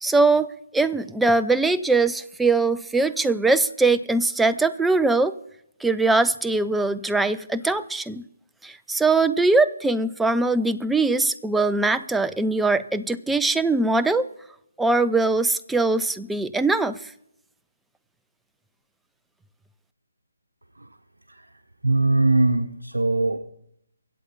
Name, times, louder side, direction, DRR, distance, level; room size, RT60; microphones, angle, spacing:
voice 1, 0.0-5.3 5.8-8.2 8.6-14.3 14.8-17.1, right 3 dB, 5° right, 12 dB, 0.4 m, -21 dB
voice 2, 21.8-23.4, right 2 dB, 85° right, 4 dB, 1.0 m, -21 dB
24.0 x 8.1 x 4.1 m, 0.76 s
figure-of-eight pair, 150°, 0 cm